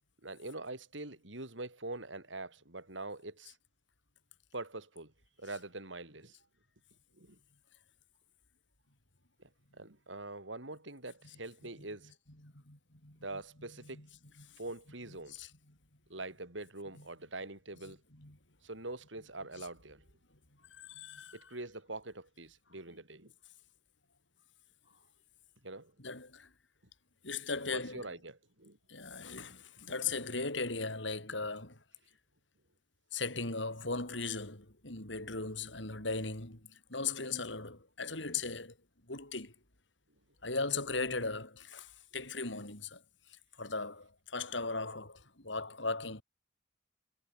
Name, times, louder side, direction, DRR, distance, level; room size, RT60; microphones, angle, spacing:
voice 1, 0.2-3.5 4.5-5.1 5.4-6.4 7.2-7.4 9.8-12.1 13.2-14.0 14.6-15.5 16.1-18.0 18.6-20.0 21.3-23.3 25.6-25.9 27.7-28.8, right 2 dB, 85° right, 6.0 m, -44 dB
voice 2, 12.4-13.2 13.9-14.1 14.4-14.6 15.3-15.8 17.0-17.1 18.1-18.4 19.6-19.7 20.7-21.5 26.0-26.5 27.2-28.1 28.9-31.8 33.1-38.8 39.1-39.5 40.4-43.0 43.3-46.2, left 4 dB, 80° left, 6.2 m, -38 dB
head